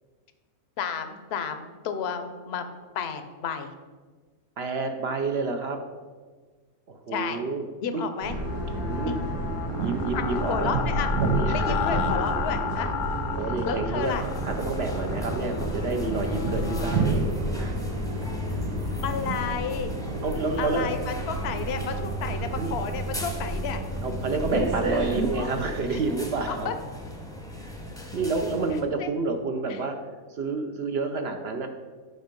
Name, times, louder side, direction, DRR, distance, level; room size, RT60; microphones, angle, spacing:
voice 1, 0.8-2.6 2.9-3.7 7.1-7.4 7.8-8.4 9.1-9.2 10.1-10.2 10.5-11.1 11.5-12.9 13.7-14.2 19.0-19.9 20.6-23.8 25.9-26.0 26.5-26.7 29.0-29.1, left 6 dB, 55° left, 8 dB, 0.9 m, -31 dB
voice 2, 4.6-5.8 6.9-7.6 7.9-8.0 8.7-9.2 9.5-10.7 11.1-11.8 13.3-14.2 14.4-17.1 17.6-17.7 18.5-18.9 20.2-20.9 22.6-22.7 24.0-26.7 27.7-27.8 28.1-30.0 30.3-31.7, right 3 dB, 55° right, 5 dB, 0.8 m, -29 dB
sound 1, 8.2-17.1, left 8 dB, 70° left, 0.5 m, -34 dB
sound 2, 8.2-25.4, right 2 dB, 85° right, 1.8 m, -30 dB
sound 3, 14.0-28.8, left 1 dB, 5° left, 0.8 m, -39 dB
7.9 x 5.4 x 5.2 m, 1.4 s
omnidirectional pair, 1.5 m